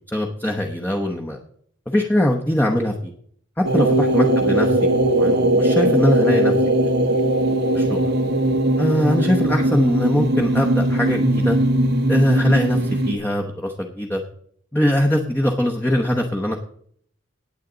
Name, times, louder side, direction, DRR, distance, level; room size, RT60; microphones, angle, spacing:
voice 1, 0.1-1.4 1.9-3.1 3.6-6.5 7.1-7.2 7.7-8.0 8.8-11.6 12.1-14.2 14.7-16.6, equal, 10° left, 1 dB, 0.9 m, -21 dB
sound 1, 3.6-13.1, right 1 dB, 55° right, 1.0 m, -19 dB
18.5 x 8.1 x 3.9 m, 0.64 s
head